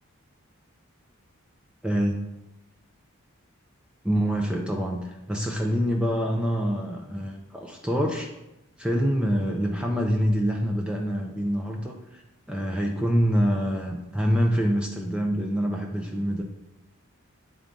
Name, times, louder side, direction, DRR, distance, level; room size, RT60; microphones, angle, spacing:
voice 1, 1.8-2.1 4.0-8.3 8.8-12.2 12.5-16.4, equal, 5° right, 1 dB, 0.5 m, -26 dB
9.5 x 3.6 x 3.7 m, 0.92 s
head